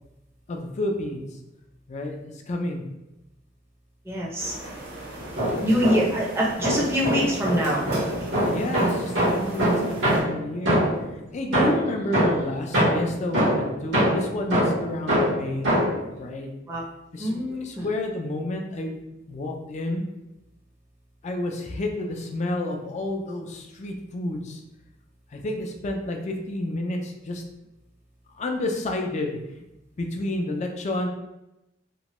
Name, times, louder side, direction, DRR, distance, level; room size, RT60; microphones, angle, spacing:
voice 1, 0.5-1.3 1.9-2.8 5.6-5.9 8.5-9.1 9.4-10.8 11.3-15.7 16.2-16.5 17.1-19.0 19.3-20.0 21.2-24.6 25.3-27.4 28.4-29.4 30.0-31.1, left 1 dB, 35° left, 3 dB, 0.4 m, -30 dB
voice 2, 4.1-4.5 5.6-7.8 16.7-16.8 17.2-17.9, equal, 15° right, -4 dB, 0.6 m, -24 dB
sound 1, 4.4-10.2, right 1 dB, 55° right, 0.9 m, -38 dB
sound 2, 5.2-6.2 6.6-11.1 11.5-16.1, equal, 75° right, 1.2 m, -23 dB
3.0 x 2.2 x 2.9 m, 0.92 s
head